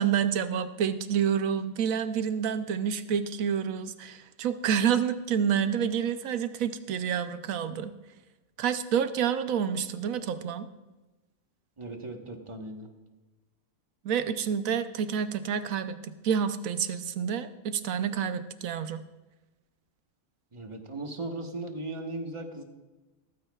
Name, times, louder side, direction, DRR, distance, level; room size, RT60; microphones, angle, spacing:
voice 1, 0.0-8.0 8.6-10.7 14.0-19.0, right 8 dB, 75° right, 11 dB, 1.1 m, -28 dB
voice 2, 11.8-12.9 20.5-22.6, right 2 dB, 25° right, 3 dB, 1.2 m, -37 dB
16.5 x 14.5 x 2.4 m, 1.1 s
omnidirectional pair, 1.4 m